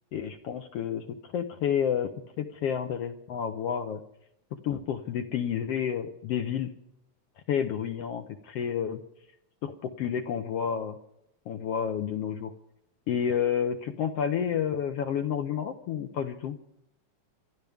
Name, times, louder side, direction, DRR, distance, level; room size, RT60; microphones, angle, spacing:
voice 1, 0.1-4.0 4.5-6.7 7.5-9.0 9.6-11.0 11.5-12.5 13.1-16.6, left 8 dB, 70° left, 6 dB, 1.6 m, -30 dB
27.0 x 12.0 x 3.5 m, 0.80 s
omnidirectional pair, 3.4 m